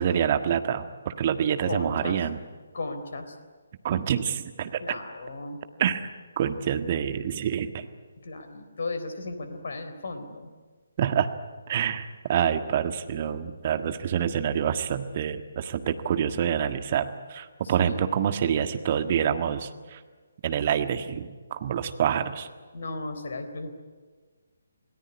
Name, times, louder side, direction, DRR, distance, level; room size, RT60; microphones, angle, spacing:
voice 1, 0.0-2.4 3.8-4.8 5.8-6.0 6.4-7.9 11.0-11.3 11.7-20.0 20.4-22.5, right 8 dB, 35° right, 9 dB, 1.6 m, -27 dB
voice 2, 1.6-2.2 2.7-3.4 4.8-5.7 8.2-10.5 17.6-18.1 22.7-23.8, left 2 dB, 50° left, 8 dB, 3.8 m, -35 dB
28.0 x 19.0 x 9.8 m, 1.5 s
figure-of-eight pair, 140°, 0 cm